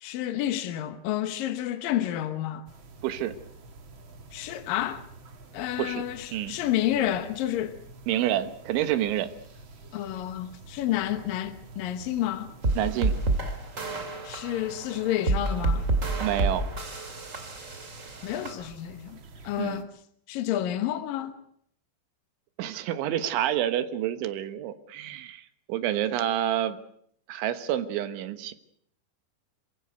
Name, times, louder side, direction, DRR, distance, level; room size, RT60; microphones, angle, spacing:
voice 1, 0.0-2.6 4.3-5.0 5.5-7.8 9.9-12.5 14.2-15.8 18.2-19.2 19.4-19.9 20.3-21.4, left 12 dB, 70° left, 2.2 m, -30 dB
sound 1, 2.7-19.8, right 3 dB, 60° right, 1.3 m, -49 dB
voice 2, 3.0-3.3 5.8-6.0 6.3-6.6 8.1-9.3 12.8-13.1 16.2-16.7 19.6-19.8 22.6-26.8 27.3-28.5, right 11 dB, 80° right, 3.7 m, -28 dB
sound 2, 12.6-18.5, right 2 dB, 30° right, 1.4 m, -29 dB
27.0 x 16.0 x 8.0 m
omnidirectional pair, 5.4 m